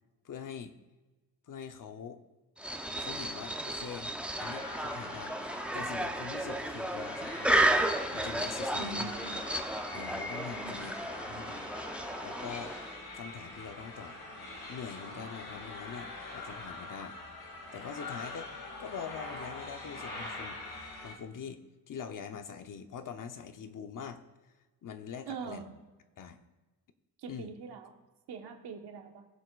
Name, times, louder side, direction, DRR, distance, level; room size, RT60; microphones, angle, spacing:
voice 1, 0.2-0.8 1.5-2.2 3.0-4.1 4.4-7.6 8.1-9.1 9.9-11.7 12.2-12.8 13.1-14.2 14.7-17.2 17.7-18.5 18.8-20.6 21.0-21.6 21.9-24.2 24.8-25.8 26.2-26.4 27.3-27.5, left 7 dB, 55° left, 8 dB, 0.9 m, -43 dB
sound 1, 2.6-13.0, right 1 dB, 5° right, 0.6 m, -33 dB
sound 2, 4.4-21.1, left 2 dB, 70° left, 2.7 m, -43 dB
voice 2, 8.8-9.4 10.6-10.7 25.3-25.7 27.2-27.9 28.3-29.3, right 5 dB, 85° right, 4 dB, 1.4 m, -43 dB
19.5 x 6.7 x 2.5 m, 1.2 s
cardioid pair, 110°, 38 cm